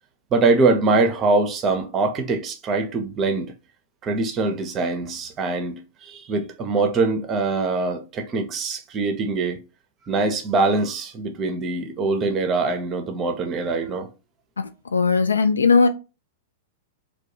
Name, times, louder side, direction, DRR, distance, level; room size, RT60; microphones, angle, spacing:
voice 1, 0.3-3.5 4.0-9.6 10.1-14.1, right 3 dB, 30° right, 0.6 m, -23 dB
voice 2, 14.9-15.9, left 4 dB, 85° left, 0.3 m, -17 dB
2.3 x 2.2 x 2.8 m
hypercardioid pair, 105°, 0 cm